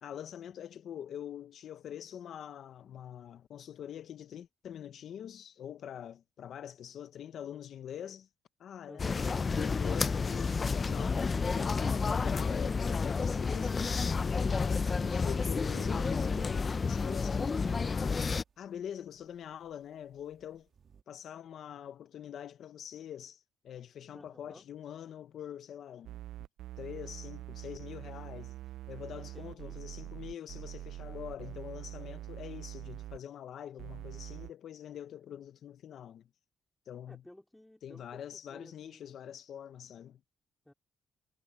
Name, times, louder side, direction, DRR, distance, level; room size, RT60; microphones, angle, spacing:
voice 1, 0.0-8.3 8.6-11.2 11.5-20.7 21.1-26.2 26.8-28.6 28.9-36.3 36.9-37.2 37.8-40.2, left 9 dB, 65° left, 0.8 m, -45 dB
voice 2, 8.9-9.3 24.1-24.6 29.2-29.8 37.1-39.3 40.6-40.7, left 1 dB, 5° left, 4.0 m, -55 dB
sound 1, 9.0-18.4, left 4 dB, 35° left, 0.5 m, -30 dB
sound 2, 15.7-21.0, right 7 dB, 50° right, 1.8 m, -55 dB
sound 3, 26.0-33.2 33.8-34.5, right 13 dB, 80° right, 0.4 m, -44 dB
cardioid pair, 90°, 0 cm